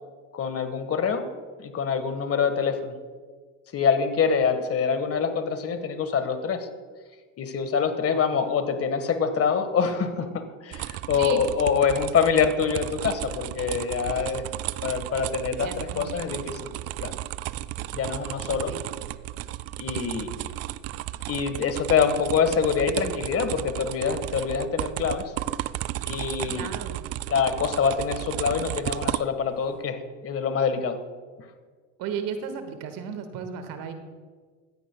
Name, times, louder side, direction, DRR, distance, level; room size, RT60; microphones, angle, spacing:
voice 1, 0.3-1.3 1.6-2.9 3.7-6.7 7.4-14.5 14.8-16.6 17.0-17.1 17.9-18.7 19.8-20.5 21.3-25.3 26.1-26.7 27.3-31.0, left 6 dB, 35° left, 9 dB, 1.5 m, -25 dB
sound 1, 10.7-29.5, right 15 dB, 40° right, 0.4 m, -34 dB
voice 2, 15.6-16.7 18.4-18.8 26.4-27.0 32.0-33.9, right 7 dB, 55° right, 7 dB, 1.8 m, -36 dB
16.5 x 15.0 x 2.3 m, 1.5 s
hypercardioid pair, 80°, 40 cm